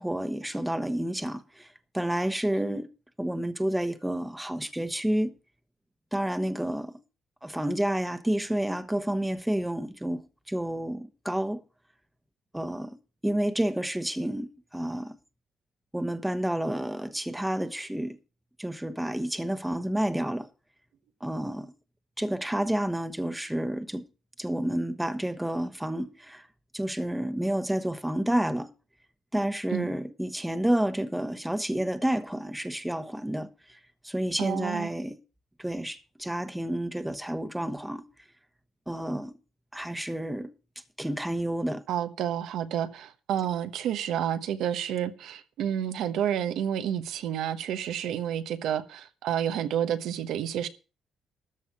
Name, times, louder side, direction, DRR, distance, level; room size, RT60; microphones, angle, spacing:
voice 1, 0.0-1.7 1.9-2.9 3.2-5.3 6.1-6.9 7.4-10.2 10.5-11.6 12.5-13.0 13.2-15.2 15.9-18.2 18.6-20.5 21.2-21.7 22.2-24.0 24.4-26.4 26.7-28.7 29.3-33.8 34.0-35.2 35.6-38.0 38.9-39.3 39.7-40.5 41.0-41.8, right 1 dB, 5° right, 1.1 m, -30 dB
voice 2, 34.4-34.9 41.9-50.7, right 10 dB, 80° right, 1.1 m, -30 dB
13.5 x 5.4 x 8.4 m
cardioid pair, 90°, 0 cm